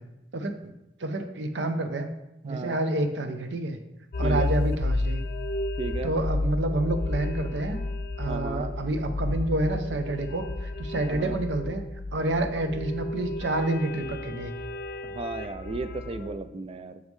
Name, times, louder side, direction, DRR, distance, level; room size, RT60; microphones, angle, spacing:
voice 1, 0.3-0.7 1.0-2.1 2.4-3.8 4.2-5.2 6.0-7.8 8.2-11.8 12.1-14.5, right 2 dB, 85° right, 7 dB, 0.7 m, -28 dB
voice 2, 2.5-2.8 4.2-4.5 5.8-6.1 8.3-8.7 11.1-11.4 15.0-17.0, right 3 dB, 35° right, 10 dB, 0.4 m, -34 dB
sound 1, 4.1-16.4, left 2 dB, 55° left, 0.5 m, -32 dB
6.5 x 5.3 x 3.1 m, 0.89 s
head